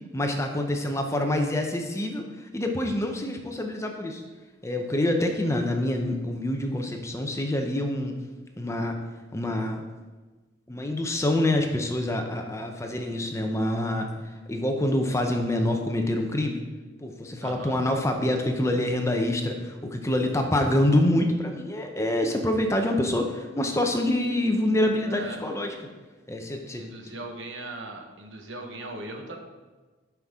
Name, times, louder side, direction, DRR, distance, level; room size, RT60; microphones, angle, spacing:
voice 1, 0.1-4.2 4.6-8.2 8.6-9.0 9.3-9.9 10.7-16.6 17.0-25.7 26.3-27.1, left 1 dB, 15° left, 3 dB, 0.7 m, -26 dB
voice 2, 17.4-17.7 25.0-25.4 26.8-29.4, right 2 dB, 80° right, 3 dB, 1.2 m, -39 dB
11.5 x 5.9 x 3.7 m, 1.3 s
head